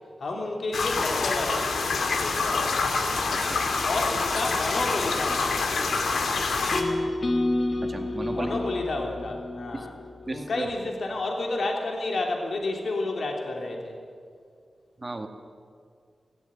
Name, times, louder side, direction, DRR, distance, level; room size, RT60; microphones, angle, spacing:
voice 1, 0.2-1.8 2.2-2.9 3.8-5.6 8.3-9.9 10.3-14.0, left 2 dB, 60° left, 1 dB, 3.1 m, -30 dB
sound 1, 0.7-6.8, left 4 dB, 90° left, 2.2 m, -26 dB
voice 2, 3.3-3.6 7.8-8.5 9.7-9.9 10.3-10.7 15.0-15.3, right 2 dB, 25° right, 5 dB, 1.9 m, -34 dB
sound 2, 6.7-10.8, left 2 dB, 45° left, 1.7 m, -30 dB
17.0 x 16.5 x 9.7 m, 2.2 s
wide cardioid pair, 120°, 0 cm